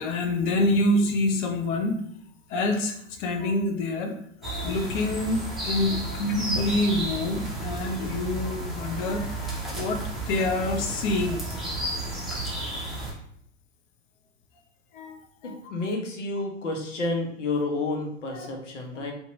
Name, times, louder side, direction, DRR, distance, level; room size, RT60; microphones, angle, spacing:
voice 1, 0.0-2.0 2.5-11.7 14.9-15.6 18.3-18.5, left 2 dB, 40° left, 4 dB, 0.5 m, -27 dB
sound 1, 4.4-13.1, right 2 dB, ahead, 0.6 m, -32 dB
voice 2, 15.4-19.1, left 2 dB, 70° left, 1 dB, 0.8 m, -30 dB
2.7 x 2.2 x 2.7 m, 0.67 s
figure-of-eight pair, 85°, 38 cm